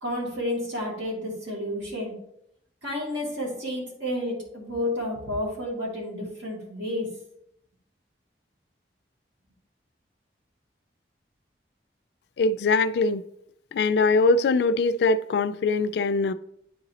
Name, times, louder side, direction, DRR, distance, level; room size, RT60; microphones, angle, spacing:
voice 1, 0.0-2.1 2.8-7.1, left 1 dB, 80° right, 2.2 m, -31 dB
voice 2, 12.4-13.2 13.7-16.3, left 3 dB, 65° left, 0.3 m, -22 dB
9.6 x 4.0 x 2.8 m
head